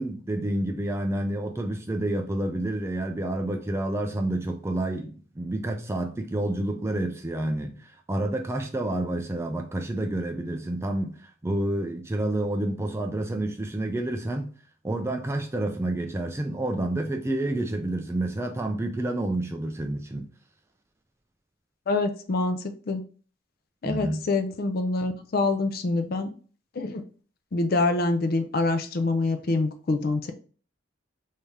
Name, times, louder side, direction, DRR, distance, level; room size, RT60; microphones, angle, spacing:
voice 1, 0.0-14.5 14.8-20.3 23.8-24.3, right 1 dB, 15° right, 0.3 m, -29 dB
voice 2, 21.9-23.0 23.8-26.3 26.7-27.0 27.5-30.3, left 3 dB, 50° left, 0.4 m, -26 dB
3.3 x 2.7 x 3.4 m
head